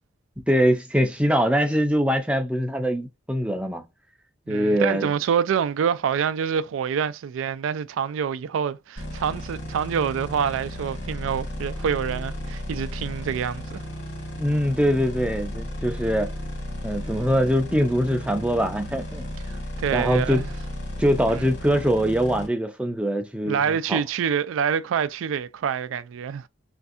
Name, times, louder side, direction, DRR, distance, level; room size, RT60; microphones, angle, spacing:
voice 1, 0.5-3.8 4.5-5.1 14.4-16.3 16.8-19.2 19.9-20.4 21.0-24.0, equal, 5° right, 0.4 m, -23 dB
voice 2, 4.5-13.8 19.5-20.5 21.3-21.4 23.5-26.4, right 7 dB, 80° right, 0.3 m, -26 dB
sound 1, 9.0-22.5, left 1 dB, 55° left, 1.4 m, -34 dB
3.3 x 2.6 x 2.5 m
head